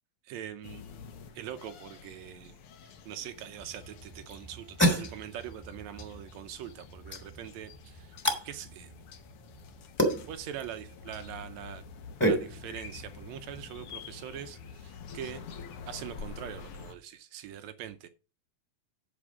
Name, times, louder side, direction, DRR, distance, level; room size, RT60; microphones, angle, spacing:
voice 1, 0.2-0.8 1.3-2.6 2.8-8.1 8.4-8.9 10.1-11.8 12.2-15.4 15.9-18.1, right 10 dB, 90° right, 1.5 m, -43 dB
sound 1, 0.6-16.9, left 6 dB, 85° left, 1.2 m, -48 dB
sound 2, 3.3-15.3, equal, 5° left, 2.2 m, -34 dB
8.5 x 6.0 x 6.1 m
omnidirectional pair, 4.1 m